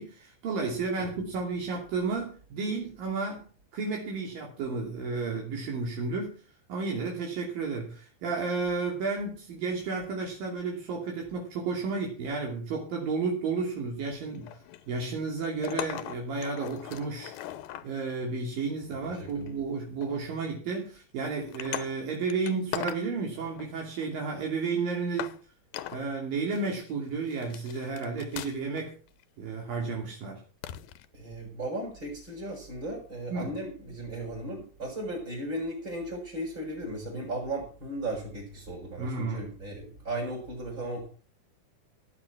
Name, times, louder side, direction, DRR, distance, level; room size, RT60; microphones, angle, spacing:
voice 1, 0.0-6.4 6.7-14.6 14.9-17.3 17.8-25.4 25.9-28.9 29.4-30.4 33.3-33.5 39.0-39.5, right 4 dB, 75° right, 0 dB, 4.5 m, -32 dB
sound 1, 14.1-15.0 15.4-17.9 18.8-19.5 20.0-20.3 20.7-20.9 21.4-23.0 23.4-24.2 24.7-24.8 25.2-25.4 25.7-26.0 26.5-26.9 27.3-28.8 29.1-29.2 30.6-31.1 32.5-32.6, left 13 dB, 85° left, 2.7 m, -40 dB
voice 2, 19.0-19.5 31.1-41.1, right 1 dB, 30° right, -3 dB, 6.2 m, -36 dB
17.0 x 8.7 x 6.1 m, 0.39 s
omnidirectional pair, 4.1 m